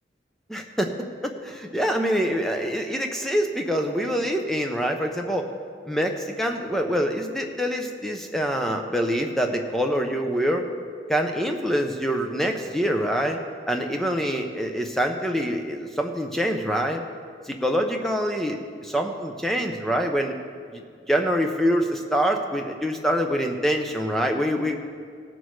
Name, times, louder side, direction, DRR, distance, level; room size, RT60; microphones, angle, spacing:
voice 1, 0.5-0.9 1.2-5.5 5.9-10.6 11.1-13.4 13.7-17.0 17.5-20.3 20.7-20.8 21.1-24.8, equal, ahead, 3 dB, 0.7 m, -25 dB
17.5 x 6.2 x 4.8 m, 2.1 s
head